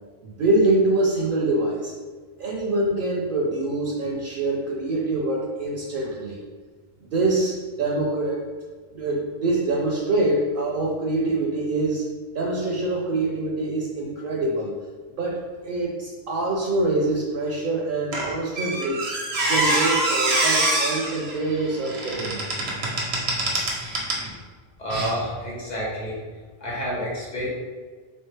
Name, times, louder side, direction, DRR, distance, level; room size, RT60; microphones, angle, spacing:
voice 1, 0.2-1.9 2.4-6.4 7.1-8.4 8.9-12.1 12.3-14.7 15.2-19.0 19.5-22.5, right 2 dB, 65° right, -2 dB, 0.7 m, -25 dB
Squeak, 18.1-24.3 24.9-25.1, right 2 dB, 85° right, 1.0 m, -25 dB
voice 2, 24.8-26.2 26.6-27.5, equal, 45° left, -5 dB, 1.2 m, -29 dB
3.3 x 3.2 x 3.2 m, 1.4 s
omnidirectional pair, 1.0 m